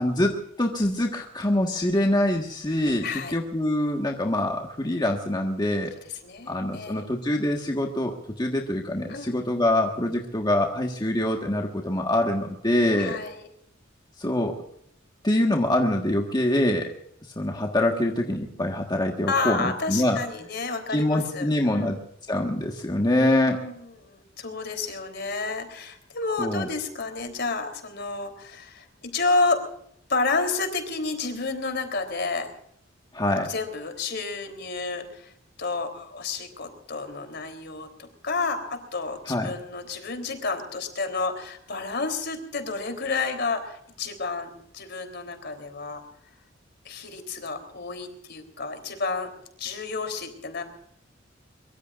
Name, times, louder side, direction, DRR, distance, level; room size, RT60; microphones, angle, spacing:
voice 1, 0.0-5.9 6.5-13.2 14.2-14.6 15.2-16.9 17.4-20.2 20.9-22.0 22.3-23.6 26.4-26.7 33.1-33.5 39.3-39.5, left 1 dB, 20° left, 1 dB, 1.6 m, -25 dB
voice 2, 3.0-3.3 6.2-7.1 9.1-9.4 13.0-13.5 19.3-21.9 23.2-29.6 30.1-32.5 33.5-35.3 35.6-46.0 46.9-49.3 49.6-50.6, left 3 dB, 55° left, 6 dB, 3.6 m, -30 dB
23.5 x 23.0 x 2.6 m, 0.70 s
head